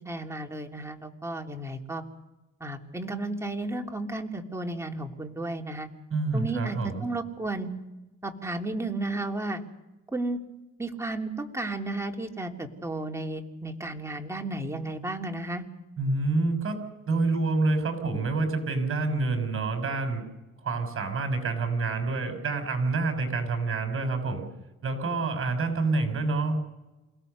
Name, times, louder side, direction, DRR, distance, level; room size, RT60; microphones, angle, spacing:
voice 1, 0.0-2.0 2.6-5.9 6.3-7.7 8.2-9.6 10.1-10.4 10.8-15.6, right 2 dB, 10° right, 2 dB, 3.3 m, -33 dB
voice 2, 6.1-7.1 16.0-16.8 17.1-20.2 20.6-24.5 24.8-26.5, right 3 dB, 45° right, 6 dB, 6.1 m, -27 dB
28.5 x 17.5 x 6.8 m, 1.0 s
cardioid pair, 90°, 30 cm